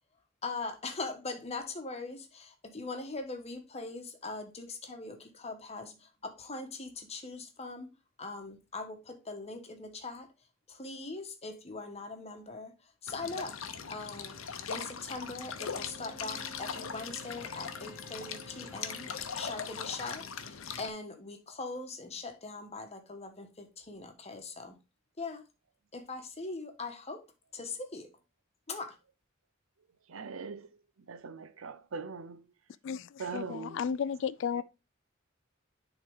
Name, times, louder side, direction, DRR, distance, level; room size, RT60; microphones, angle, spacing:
voice 1, 0.4-7.9 8.2-10.3 10.7-12.7 13.0-13.5 13.9-14.4 14.7-19.1 19.3-24.8 25.2-25.4 25.9-27.2 27.5-28.1 28.7-29.0, left 3 dB, 30° left, 1.2 m, -41 dB
sound 1, 13.1-20.9, left 6 dB, 85° left, 0.8 m, -40 dB
Bowed string instrument, 15.3-19.6, equal, 25° right, 3.0 m, -52 dB
voice 2, 30.1-32.5 33.2-33.8 34.5-34.6, right 5 dB, 80° right, 0.6 m, -42 dB
voice 3, 32.8-34.6, left 7 dB, 60° left, 0.3 m, -34 dB
9.6 x 3.7 x 3.6 m
head